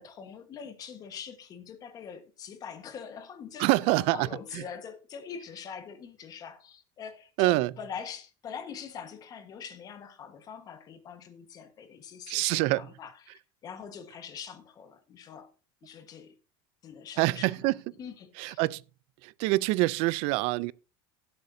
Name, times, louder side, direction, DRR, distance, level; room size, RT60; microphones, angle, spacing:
voice 1, 0.0-15.5 15.8-16.4 16.8-17.7 18.0-18.6, left 7 dB, 30° left, 1.4 m, -43 dB
voice 2, 3.6-4.3 4.5-4.6 7.4-7.7 12.3-12.8 17.2-17.8 18.4-18.8 19.2-20.7, right 20 dB, 55° right, 0.4 m, -25 dB
17.5 x 7.9 x 2.7 m
cardioid pair, 160°, 12 cm